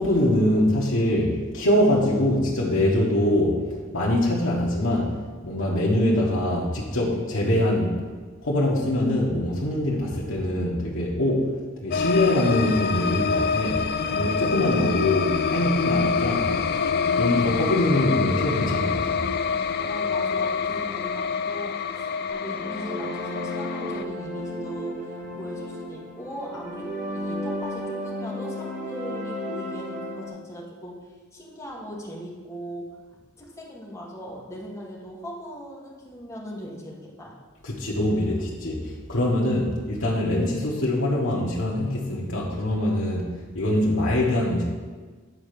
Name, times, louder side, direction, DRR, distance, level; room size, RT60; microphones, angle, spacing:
voice 1, 0.0-3.6 3.9-5.1 5.4-8.0 8.4-11.5 11.8-13.8 14.1-16.5 17.1-19.2 37.6-43.3 43.5-44.6, left 1 dB, 65° left, -5 dB, 1.4 m, -23 dB
sound 1, 11.9-24.0, left 5 dB, 50° left, 0.4 m, -26 dB
voice 2, 19.8-33.0 33.4-37.4, equal, 15° left, -4 dB, 1.7 m, -39 dB
sound 2, 22.4-30.3, left 1 dB, 40° right, 1.4 m, -33 dB
9.7 x 4.3 x 6.8 m, 1.5 s
head